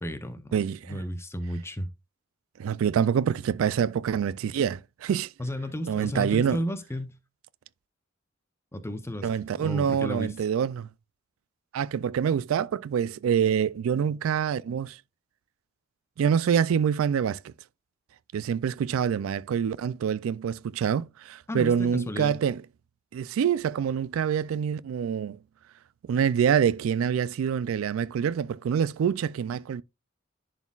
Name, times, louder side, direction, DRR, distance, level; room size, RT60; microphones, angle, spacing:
voice 1, 0.0-0.6 0.9-1.9 5.4-7.2 8.7-9.3 9.6-10.3 21.5-22.4, equal, 15° left, 0.6 m, -33 dB
voice 2, 0.5-1.0 2.6-5.3 5.9-6.6 9.2-10.9 11.7-15.0 16.2-17.5 18.3-22.6 23.1-25.4 26.1-29.8, right 8 dB, 75° right, 0.3 m, -26 dB
10.5 x 4.2 x 2.4 m
head